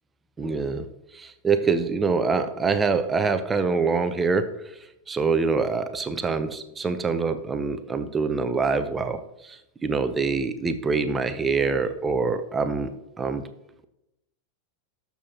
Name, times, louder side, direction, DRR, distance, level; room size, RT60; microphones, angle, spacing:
voice 1, 0.4-0.9 1.1-4.5 5.1-12.9 13.2-13.4, right 4 dB, 15° right, 9 dB, 0.7 m, -25 dB
18.5 x 7.0 x 2.9 m, 0.88 s
figure-of-eight pair, 90°, 0 cm